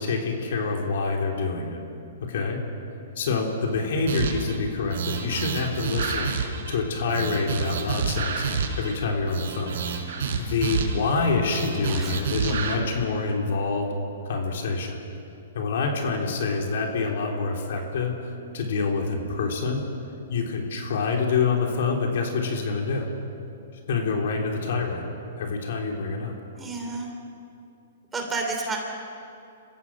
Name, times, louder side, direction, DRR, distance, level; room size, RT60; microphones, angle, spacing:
voice 1, 0.0-1.8 2.2-2.6 3.2-8.4 8.8-9.7 10.4-13.9 14.3-15.0 15.5-18.1 18.5-19.8 20.3-23.1 23.9-25.1 25.4-26.3, left 4 dB, 65° left, 1 dB, 3.5 m, -26 dB
sound 1, 4.1-4.6 4.9-6.8 7.1-8.9 9.3-11.1 11.4-12.7, right 6 dB, 65° right, 3.8 m, -28 dB
voice 2, 11.8-12.1 26.6-27.1 28.1-28.8, right 3 dB, 10° right, 2 dB, 3.1 m, -31 dB
28.0 x 15.5 x 6.4 m, 2.7 s
hypercardioid pair, 145°, 0 cm